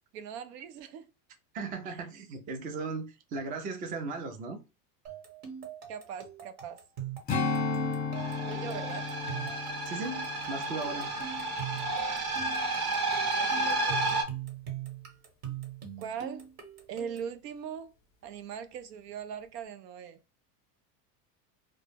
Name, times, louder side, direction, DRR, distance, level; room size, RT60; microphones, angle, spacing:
voice 1, 0.1-1.1 1.9-2.0 5.9-6.8 8.4-9.1 13.4-14.1 16.0-16.5 16.9-17.9 18.2-20.2, right 7 dB, 85° right, 0.6 m, -40 dB
voice 2, 1.5-4.6 9.8-11.1, right 4 dB, 20° right, 0.3 m, -37 dB
sound 1, 5.1-17.4, right 9 dB, 65° right, 1.2 m, -42 dB
Strum, 7.3-12.0 12.4-12.6, left 4 dB, 20° left, 0.7 m, -35 dB
sound 2, 8.2-14.2, right 2 dB, 50° right, 0.9 m, -32 dB
2.1 x 2.0 x 3.1 m
hypercardioid pair, 105°, 47 cm